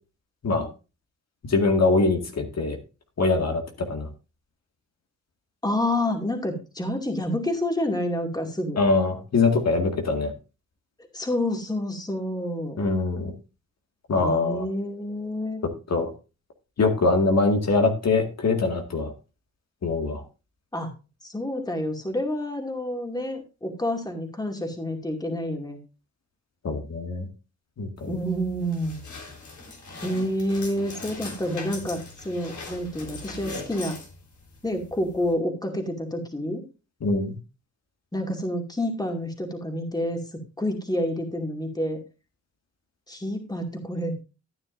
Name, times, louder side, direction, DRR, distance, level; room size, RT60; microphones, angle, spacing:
voice 1, 1.4-2.8 3.2-3.6 3.9-4.1 8.8-10.3 12.8-13.3 14.1-14.6 15.9-16.1 16.8-19.1 19.8-20.2 26.6-27.3 27.8-28.1 37.0-37.3, left 3 dB, 60° left, 3 dB, 2.1 m, -23 dB
voice 2, 5.6-8.8 11.1-12.8 14.1-15.6 20.7-20.9 21.2-25.8 28.1-29.0 30.0-34.0 34.6-36.6 38.1-40.2 40.6-42.0 43.1-44.1, left 1 dB, 15° left, 3 dB, 2.4 m, -28 dB
sound 1, 28.0-35.3, left 3 dB, 80° left, 4.1 m, -41 dB
13.5 x 9.7 x 2.6 m, 0.30 s
wide cardioid pair, 110°, 29 cm